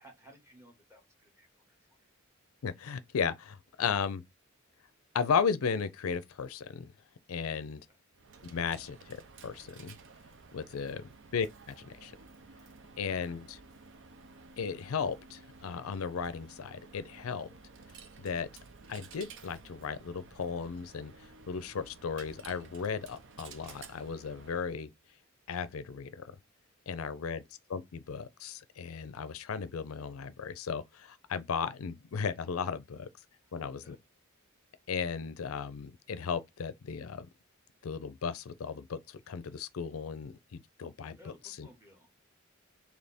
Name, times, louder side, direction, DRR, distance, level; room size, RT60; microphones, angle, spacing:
voice 1, 0.0-2.1 7.9-8.0 11.0-11.1 13.3-13.4 27.2-27.3 33.4-34.0 41.2-42.1, equal, 15° right, 1.4 m, -59 dB
voice 2, 2.6-4.2 5.1-6.9 7.3-7.8 8.4-9.2 9.4-10.0 10.5-12.1 13.0-13.6 14.6-17.5 18.2-18.5 18.9-24.9 25.5-26.4 26.9-27.4 27.7-33.1 33.5-34.0 34.9-37.3 37.8-41.7, left 6 dB, 80° left, 0.5 m, -35 dB
Coin (dropping), 8.1-24.8, right 4 dB, 60° right, 0.6 m, -53 dB
3.4 x 2.9 x 4.0 m
head